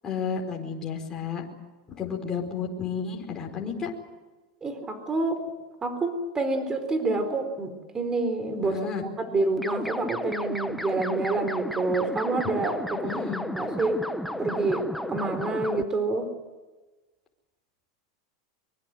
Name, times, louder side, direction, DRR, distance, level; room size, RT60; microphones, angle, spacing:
voice 1, 0.0-1.4 1.9-3.9 8.6-9.0 13.0-13.4, left 6 dB, 20° left, 0 dB, 4.8 m, -32 dB
voice 2, 4.6-5.4 5.8-8.8 9.2-13.2 13.6-14.0 14.4-16.3, right 3 dB, 20° right, 9 dB, 4.2 m, -27 dB
sound 1, 9.6-15.8, left 1 dB, ahead, 1.3 m, -33 dB
24.0 x 23.0 x 7.8 m, 1.2 s
supercardioid pair, 125°, 3 cm